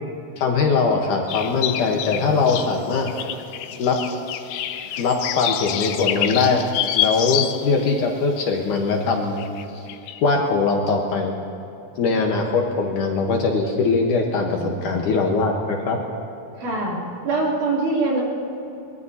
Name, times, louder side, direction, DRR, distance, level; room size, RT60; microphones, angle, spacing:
voice 1, 0.4-3.1 3.8-4.0 5.0-6.6 6.9-9.4 9.7-9.8 10.2-11.3 12.0-16.0, left 4 dB, 70° left, 1 dB, 2.3 m, -21 dB
sound 1, 1.3-7.9 8.4-8.5 9.4-9.6 9.9-10.2, left 11 dB, 85° left, 1.9 m, -27 dB
voice 2, 16.6-17.0 17.2-18.2, right 3 dB, 55° right, -5 dB, 4.3 m, -23 dB
23.0 x 21.5 x 2.8 m, 3.0 s
omnidirectional pair, 4.4 m